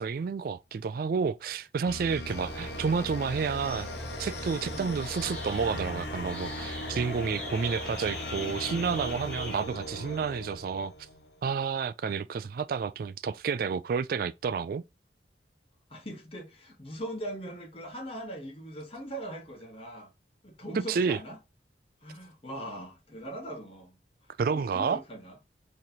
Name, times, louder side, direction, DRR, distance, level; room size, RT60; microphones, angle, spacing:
voice 1, 0.0-3.9 4.2-10.9 11.4-14.8 20.9-21.2 24.4-25.0, right 5 dB, 55° right, 0.3 m, -30 dB
sound 1, 1.9-11.3, left 1 dB, 65° left, 0.7 m, -39 dB
sound 2, 2.3-10.4, left 2 dB, 50° left, 1.1 m, -47 dB
sound 3, 2.3-9.6, left 1 dB, 5° left, 1.2 m, -42 dB
voice 2, 15.9-20.1 20.4-21.4 22.0-25.4, right 1 dB, 30° left, 1.2 m, -41 dB
4.1 x 3.1 x 2.7 m
head